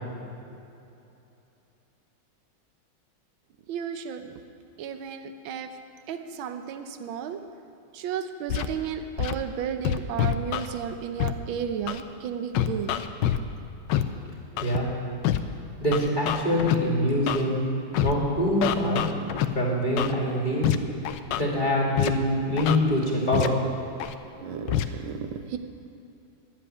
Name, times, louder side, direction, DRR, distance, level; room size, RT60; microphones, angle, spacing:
voice 1, 3.7-4.3 4.8-5.7 6.1-7.4 7.9-12.9 13.3-13.4 24.4-25.6, right 8 dB, 80° right, 7 dB, 1.6 m, -33 dB
Scratching (performance technique), 8.5-8.7 9.2-9.3 9.8-10.7 11.2-11.3 11.9-12.0 12.5-13.4 13.9-14.0 14.6-14.8 15.2-15.4 15.9-16.8 17.3-17.4 17.9-18.1 18.6-19.5 20.0-20.1 20.6-20.8 21.0-21.4 22.0-22.1 22.6-22.8 23.3-23.5 24.0-24.1 24.7-24.8, left 12 dB, 70° left, 1.2 m, -25 dB
voice 2, 14.6-14.9 15.8-17.6 18.0-19.1 19.5-20.7 21.3-23.5, left 1 dB, 25° left, -4 dB, 2.5 m, -24 dB
12.0 x 7.9 x 10.0 m, 2.7 s
omnidirectional pair, 2.2 m